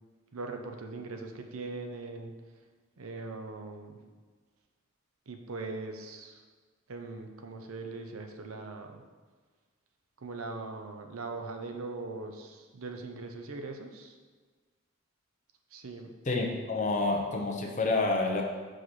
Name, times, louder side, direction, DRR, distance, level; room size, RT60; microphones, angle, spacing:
voice 1, 0.3-2.3 3.0-4.0 5.3-6.4 6.9-9.0 10.2-14.2 15.7-16.1, right 3 dB, 90° right, 4 dB, 0.7 m, -40 dB
voice 2, 16.3-18.4, left 3 dB, 35° left, 1 dB, 0.8 m, -28 dB
6.1 x 5.0 x 4.2 m, 1.4 s
head